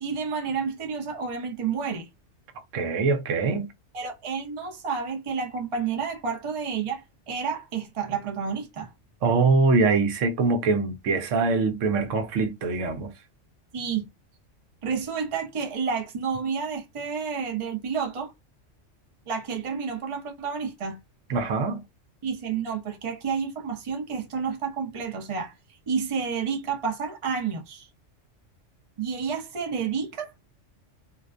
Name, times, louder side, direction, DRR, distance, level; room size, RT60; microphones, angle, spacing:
voice 1, 0.0-2.1 3.9-8.9 13.7-14.1 14.8-18.3 19.3-21.0 22.2-25.5 25.9-27.9 29.0-30.3, right 6 dB, 40° right, 0.5 m, -30 dB
voice 2, 2.7-3.7 9.2-13.1 21.3-21.8, right 4 dB, 80° right, 0.9 m, -23 dB
2.5 x 2.1 x 2.4 m
omnidirectional pair, 1.3 m